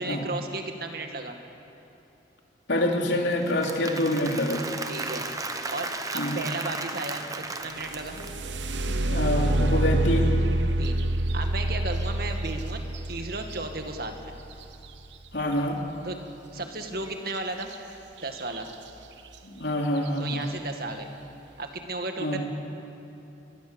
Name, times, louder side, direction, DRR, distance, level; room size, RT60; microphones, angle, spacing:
voice 1, 0.0-1.4 4.9-5.3 5.7-8.2 10.8-11.0 11.3-12.8 13.1-14.3 16.0-16.2 16.5-17.7 18.2-18.7 20.2-21.1 21.6-22.5, right 2 dB, 55° right, 4 dB, 2.1 m, -34 dB
voice 2, 2.7-4.6 6.1-6.4 8.9-10.4 15.3-15.8 19.4-20.4 22.2-22.4, left 1 dB, 75° left, 1 dB, 3.3 m, -26 dB
Applause / Crowd, 3.3-8.6, right 3 dB, 20° right, 1.1 m, -35 dB
sound 1, 7.7-15.5 17.6-17.7 18.2-18.7 19.3-19.4 20.0-20.3, right 1 dB, 85° right, 1.1 m, -27 dB
23.5 x 22.0 x 7.2 m, 2.8 s
head